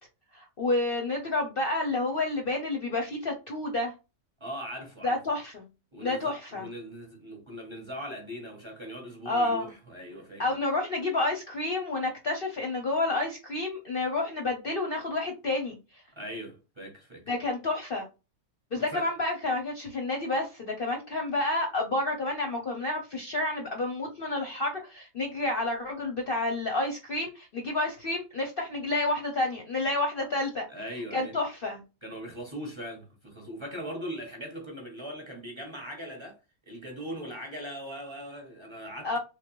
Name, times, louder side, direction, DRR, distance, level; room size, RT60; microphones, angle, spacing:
voice 1, 0.3-3.9 5.0-5.7 6.0-6.7 9.3-9.7 10.4-15.8 17.3-18.1 18.7-30.7 31.1-31.8 39.0-39.2, left 2 dB, 50° left, 0.7 m, -29 dB
voice 2, 4.4-5.2 5.9-10.4 16.2-17.2 18.7-19.1 30.7-31.3 32.0-36.4 36.7-39.2, equal, 25° right, 0.9 m, -40 dB
3.4 x 3.2 x 3.0 m
omnidirectional pair, 1.5 m